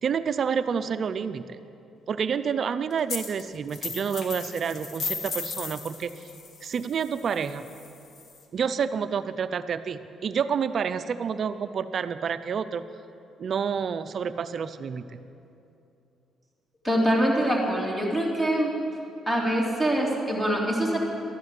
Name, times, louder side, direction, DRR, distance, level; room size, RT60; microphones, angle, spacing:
voice 1, 0.0-1.4 2.1-6.2 6.6-7.6 8.5-12.8 13.4-15.2, right 7 dB, 55° right, 11 dB, 0.5 m, -29 dB
sound 1, 3.1-3.4 3.7-8.4, left 4 dB, 60° left, 1.8 m, -36 dB
voice 2, 16.8-18.7 19.3-21.0, right 1 dB, 10° left, -2 dB, 3.3 m, -24 dB
13.0 x 10.5 x 7.6 m, 2.7 s
cardioid pair, 90°, 0 cm